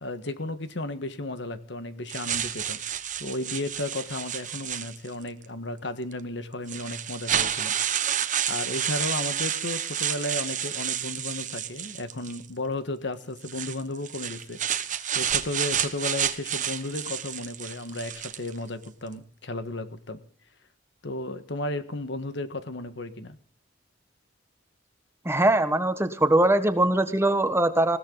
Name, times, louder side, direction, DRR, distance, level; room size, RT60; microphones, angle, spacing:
voice 1, 0.0-2.8 3.2-7.7 8.5-14.8 15.1-20.2 21.0-23.4, left 2 dB, 70° left, 10 dB, 1.5 m, -34 dB
sound 1, 2.1-5.3 6.1-6.2 6.7-12.5 13.4-18.6, right 9 dB, 45° right, 1.2 m, -30 dB
voice 2, 25.2-28.0, right 1 dB, 15° right, 9 dB, 1.4 m, -22 dB
20.5 x 17.0 x 4.0 m, 0.42 s
head